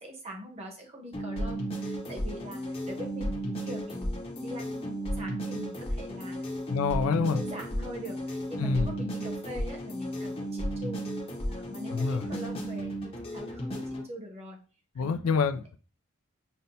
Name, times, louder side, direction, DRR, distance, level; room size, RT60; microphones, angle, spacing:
voice 1, 0.0-6.5 7.3-11.1 11.5-14.6 15.0-15.4, equal, 30° right, 0.9 m, -43 dB
sound 1, 1.1-14.1, right 1 dB, 30° left, 0.7 m, -34 dB
voice 2, 6.7-7.4 8.6-8.9 11.9-12.3 15.0-15.8, left 5 dB, 90° left, 0.3 m, -27 dB
5.4 x 2.2 x 2.7 m
head